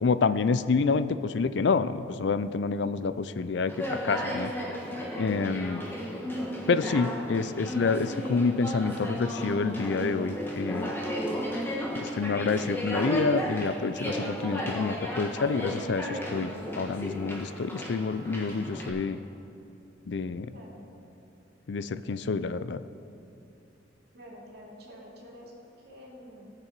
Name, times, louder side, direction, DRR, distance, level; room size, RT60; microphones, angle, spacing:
voice 1, 0.0-4.5 5.2-5.8 6.7-10.9 12.0-19.2 20.1-20.5 21.7-22.8, left 4 dB, 65° left, 13 dB, 0.4 m, -28 dB
Conversation, 3.7-18.9, equal, 10° left, 1.4 m, -34 dB
sound 1, 10.0-15.5, right 1 dB, 30° right, 0.7 m, -43 dB
voice 2, 20.5-20.9 24.1-26.5, equal, 55° right, -3 dB, 2.4 m, -48 dB
19.0 x 6.8 x 4.6 m, 2.7 s
head